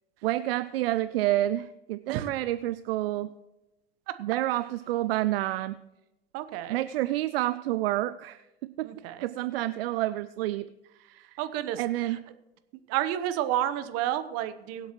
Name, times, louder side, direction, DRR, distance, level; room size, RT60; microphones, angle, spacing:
voice 1, 0.2-3.3 4.2-5.8 6.7-8.4 8.8-8.9 9.2-10.7 11.0-11.4 11.8-12.2, right 15 dB, 70° right, 15 dB, 0.5 m, -29 dB
voice 2, 6.3-6.8 8.8-9.3 11.4-12.2 12.9-14.9, right 12 dB, 50° right, 11 dB, 1.1 m, -31 dB
23.0 x 8.2 x 3.1 m, 0.98 s
hypercardioid pair, 85°, 31 cm